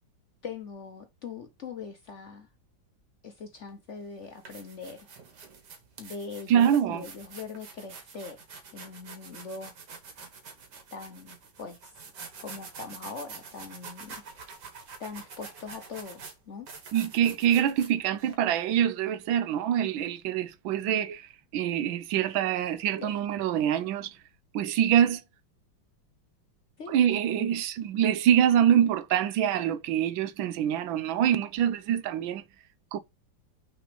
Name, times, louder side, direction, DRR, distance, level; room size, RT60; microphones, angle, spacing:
voice 1, 0.4-2.5 3.2-5.1 6.0-8.4 8.7-9.7 10.9-11.9 12.4-14.6 15.0-16.7 23.0-23.1 26.8-26.9 27.4-27.5, left 5 dB, 50° left, 0.9 m, -41 dB
sound 1, 3.5-3.7 4.2-18.3, right 5 dB, 60° right, 2.0 m, -47 dB
voice 2, 6.5-7.0 16.9-24.1 24.5-25.2 26.9-32.4 32.9-33.0, right 10 dB, 85° right, 1.4 m, -25 dB
6.1 x 4.1 x 5.0 m
omnidirectional pair, 2.1 m